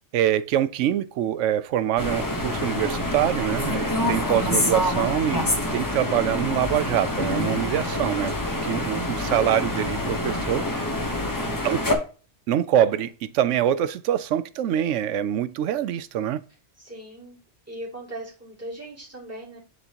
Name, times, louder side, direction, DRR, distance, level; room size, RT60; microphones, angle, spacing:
voice 1, 0.1-8.3 8.6-10.7 11.6-11.8 12.5-16.4, right 11 dB, 80° right, 0.9 m, -24 dB
sound 1, 2.0-12.0, left 1 dB, 20° left, 0.9 m, -26 dB
voice 2, 11.0-11.8 16.8-17.4 17.7-19.6, right 1 dB, 10° right, 2.4 m, -40 dB
9.5 x 4.0 x 2.8 m
omnidirectional pair, 1.3 m